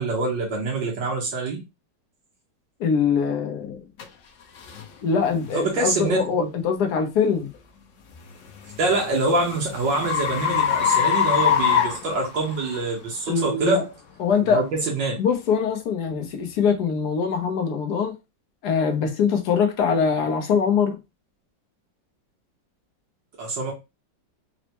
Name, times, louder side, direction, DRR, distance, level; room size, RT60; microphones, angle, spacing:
voice 1, 0.0-1.6 5.5-6.5 8.8-13.9 14.4-15.1 23.4-23.7, right 3 dB, 80° right, 1.7 m, -25 dB
voice 2, 2.8-3.8 5.0-7.5 13.3-13.8 14.2-14.6 15.2-18.2 18.6-21.0, left 6 dB, 65° left, 1.2 m, -23 dB
sound 1, 4.0-4.1 4.7-4.9 5.5-5.7 8.3-12.8, left 8 dB, 85° left, 0.6 m, -23 dB
4.2 x 2.1 x 2.9 m
omnidirectional pair, 2.0 m